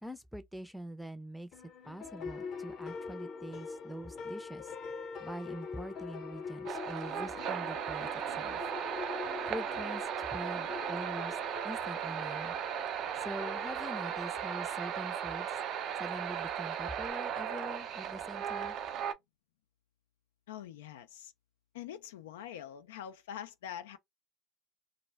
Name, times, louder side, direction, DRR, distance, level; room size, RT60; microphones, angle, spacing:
voice 1, 0.0-1.5 1.9-4.7 5.2-8.7 9.5-11.4 11.6-12.5 13.2-15.5 16.0-18.8, right 1 dB, ahead, 0.5 m, -44 dB
sound 1, 1.5-17.1, left 5 dB, 55° left, 0.7 m, -45 dB
sound 2, 6.7-19.1, right 9 dB, 60° right, 0.5 m, -36 dB
voice 2, 20.5-21.3 21.7-24.0, left 10 dB, 85° left, 0.3 m, -44 dB
2.2 x 2.1 x 3.3 m
hypercardioid pair, 80°, 0 cm